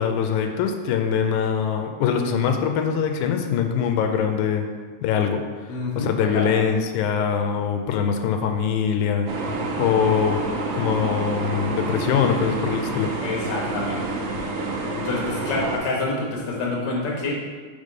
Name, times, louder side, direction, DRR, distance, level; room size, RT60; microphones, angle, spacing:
voice 1, 0.0-4.7 5.0-5.4 6.0-9.3 9.8-10.4 10.7-13.1, left 7 dB, 85° left, 5 dB, 1.9 m, -23 dB
voice 2, 5.7-6.5 13.2-14.2 14.9-17.3, left 2 dB, 60° left, -2 dB, 1.1 m, -27 dB
sound 1, 9.3-15.8, right 2 dB, 85° right, 1.3 m, -28 dB
5.2 x 3.4 x 5.3 m, 1.5 s
omnidirectional pair, 3.4 m